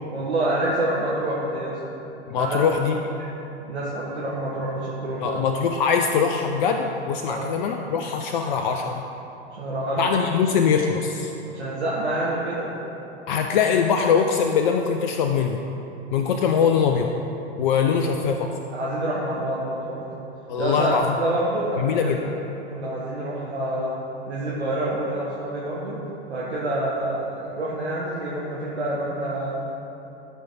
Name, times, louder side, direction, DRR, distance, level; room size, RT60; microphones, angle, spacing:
voice 1, 0.1-1.8 2.4-2.6 3.7-5.4 7.2-7.4 9.5-10.1 11.5-12.7 18.3-18.4 18.7-20.2 20.6-22.3 22.7-23.9 24.3-26.0 26.3-29.5, right 1 dB, 75° right, -7 dB, 1.4 m, -27 dB
voice 2, 2.3-3.0 5.2-9.0 10.0-11.3 13.3-15.6 16.1-17.1 17.6-18.5 20.5-21.1 21.8-22.2, left 6 dB, 45° left, 4 dB, 0.5 m, -22 dB
12.5 x 4.5 x 4.6 m, 2.9 s
figure-of-eight pair, 95°, 34 cm